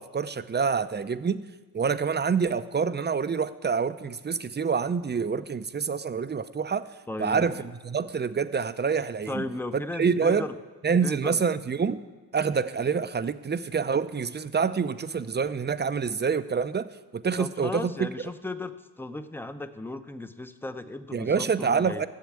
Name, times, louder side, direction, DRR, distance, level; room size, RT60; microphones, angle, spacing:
voice 1, 0.0-1.4 1.7-6.9 7.2-9.4 9.7-10.5 10.8-12.0 12.3-18.1 21.1-22.1, right 5 dB, 25° right, 12 dB, 0.7 m, -27 dB
voice 2, 7.1-7.6 9.3-10.6 11.0-11.4 17.4-22.0, left 2 dB, 5° left, 9 dB, 0.8 m, -36 dB
13.5 x 7.2 x 8.7 m, 1.3 s
supercardioid pair, 60°, 40 cm